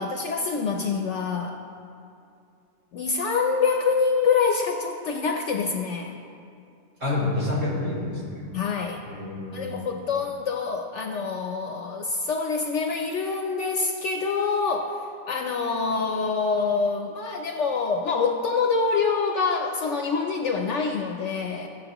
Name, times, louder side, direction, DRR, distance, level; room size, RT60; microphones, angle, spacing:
voice 1, 0.0-1.6 2.9-6.2 8.5-9.0 9.5-21.7, left 5 dB, 65° left, 3 dB, 0.9 m, -26 dB
voice 2, 7.0-8.5 9.1-10.0, left 2 dB, 65° right, -7 dB, 3.0 m, -28 dB
16.0 x 7.1 x 3.0 m, 2.6 s
omnidirectional pair, 1.4 m